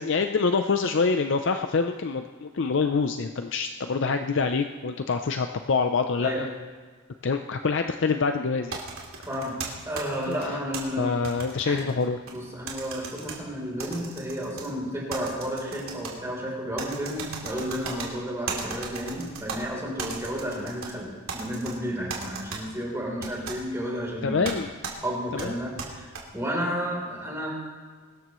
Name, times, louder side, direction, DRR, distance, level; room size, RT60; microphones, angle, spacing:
voice 1, 0.0-6.5 7.2-8.8 10.3-10.4 11.0-12.2 24.2-24.7 25.3-25.5, left 4 dB, 55° left, 7 dB, 0.5 m, -26 dB
sound 1, 8.7-10.8 11.2-12.4 12.7-13.4 13.8-14.7 15.1-16.1 16.8-18.1 18.5-19.6 20.0-20.9 21.3-21.7 22.1-22.6 23.2-23.6 24.4-24.6 24.8-24.9 25.4-26.2, right 5 dB, 75° right, 2.6 m, -36 dB
voice 2, 9.3-9.6 9.9-11.2 11.6-11.8 12.3-24.6 25.0-26.1 26.3-27.5, equal, 15° right, -3 dB, 3.6 m, -32 dB
22.5 x 13.0 x 3.1 m, 1.5 s
head